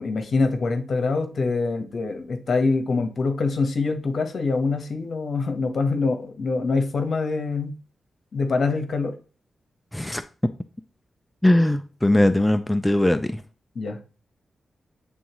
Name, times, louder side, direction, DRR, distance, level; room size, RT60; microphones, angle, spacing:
voice 1, 0.0-7.7 8.3-9.1 13.7-14.0, left 3 dB, 60° left, 1.1 m, -24 dB
voice 2, 11.4-13.4, left 1 dB, 10° left, 0.4 m, -20 dB
8.7 x 3.6 x 3.0 m
cardioid pair, 90°, 0 cm